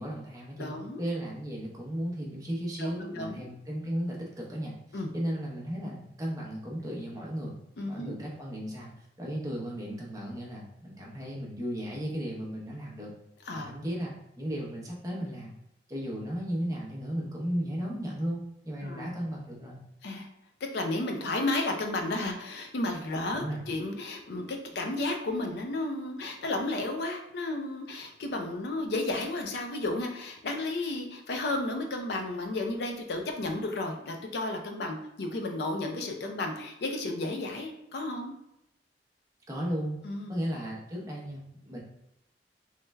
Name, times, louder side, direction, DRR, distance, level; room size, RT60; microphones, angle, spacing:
voice 1, 0.0-7.5 7.8-13.1 13.5-15.5 15.9-19.8 23.3-23.6 39.5-40.0 40.3-41.8, equal, 20° right, -3 dB, 0.7 m, -35 dB
voice 2, 0.6-1.0 2.8-3.4 4.9-5.1 7.8-8.1 13.5-13.7 18.8-19.1 20.0-20.3 20.7-38.3 40.0-40.3, left 2 dB, 60° left, 3 dB, 0.4 m, -33 dB
3.2 x 2.1 x 3.3 m, 0.83 s
head